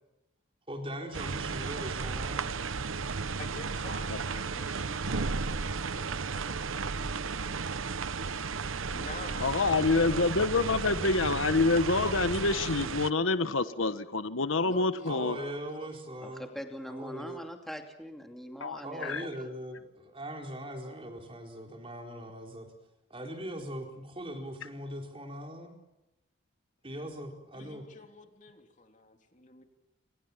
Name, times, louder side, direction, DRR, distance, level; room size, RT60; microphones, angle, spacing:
voice 1, 0.7-2.5 15.1-16.5 16.9-17.4 18.8-22.7 23.1-25.7 26.8-27.8, equal, 25° right, 3 dB, 4.5 m, -40 dB
sound 1, 1.1-13.1, right 4 dB, 80° right, 1.0 m, -34 dB
voice 2, 3.4-7.1 8.9-11.1 14.6-16.2 16.5-16.6 27.5-29.6, left 3 dB, 35° left, 5 dB, 3.3 m, -49 dB
voice 3, 9.4-15.4 18.6-19.3, left 3 dB, 75° left, 12 dB, 1.2 m, -27 dB
voice 4, 16.2-19.5, equal, ahead, 4 dB, 2.6 m, -43 dB
28.5 x 27.5 x 7.4 m, 0.96 s
head